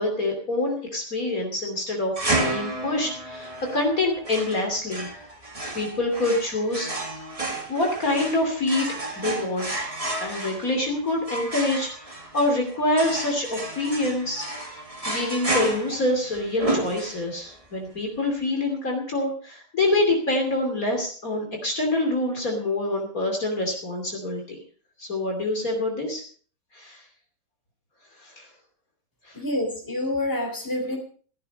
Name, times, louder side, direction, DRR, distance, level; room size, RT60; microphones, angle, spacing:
voice 1, 0.0-5.1 5.7-6.9 7.7-9.7 10.2-14.8 15.1-24.6 25.0-26.2 26.7-27.0 28.2-28.5 29.3-29.4, left 2 dB, 50° left, 2 dB, 3.3 m, -26 dB
sound 1, 2.2-17.5, right 2 dB, 20° right, 2.2 m, -31 dB
voice 2, 29.3-31.0, left 1 dB, 10° left, 2 dB, 3.8 m, -27 dB
16.0 x 11.5 x 5.4 m, 0.43 s
omnidirectional pair, 2.0 m